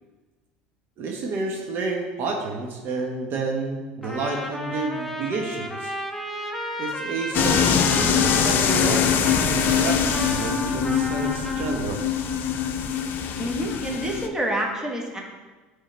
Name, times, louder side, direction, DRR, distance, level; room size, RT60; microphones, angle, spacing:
voice 1, 1.0-5.9 6.8-12.0, right 3 dB, 55° right, 1 dB, 1.1 m, -30 dB
Trumpet, 4.0-11.8, equal, 5° left, 0.9 m, -33 dB
sound 1, 7.3-14.3, left 7 dB, 50° left, 0.6 m, -23 dB
voice 2, 13.4-15.2, right 1 dB, 15° right, 0 dB, 1.5 m, -28 dB
8.9 x 3.7 x 4.2 m, 1.3 s
hypercardioid pair, 85°, 4 cm